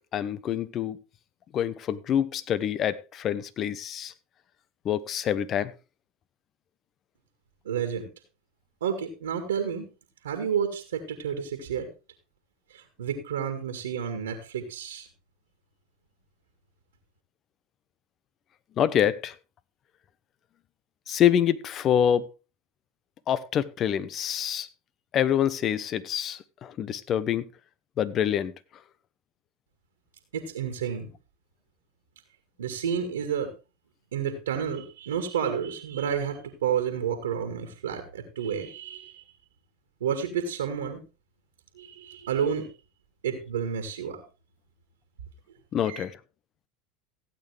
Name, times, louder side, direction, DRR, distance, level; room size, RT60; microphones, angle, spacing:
voice 1, 0.1-1.0 1.5-4.1 4.8-5.7 18.8-19.4 21.1-22.3 23.3-24.7 25.1-27.5 28.0-28.5 45.7-46.2, left 10 dB, 40° left, 0.9 m, -26 dB
voice 2, 7.7-8.1 8.8-9.9 10.2-11.9 12.7-15.1 30.3-31.1 32.6-33.5 34.1-39.2 40.0-41.0 41.8-42.7 43.2-44.2 45.8-46.0, right 7 dB, 85° right, 2.0 m, -30 dB
16.0 x 8.6 x 3.4 m
hypercardioid pair, 85°, 0 cm